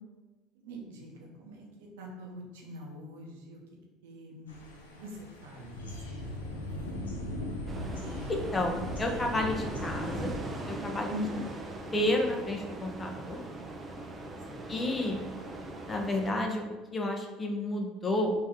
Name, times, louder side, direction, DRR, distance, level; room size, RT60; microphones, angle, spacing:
voice 1, 0.5-3.6 4.0-4.6 4.9-7.3 11.1-11.5 14.5-15.1, left 1 dB, 80° right, -1 dB, 0.9 m, -43 dB
sound 1, 4.5-10.3, left 1 dB, 90° left, 0.6 m, -39 dB
sound 2, 7.7-16.3, right 2 dB, 25° right, 0.6 m, -40 dB
voice 2, 8.3-10.3 10.7-11.1 11.9-13.4 14.7-15.2 15.9-18.3, left 1 dB, 25° left, 2 dB, 0.8 m, -31 dB
3.3 x 2.8 x 3.6 m, 1.2 s
hypercardioid pair, 75°, 0 cm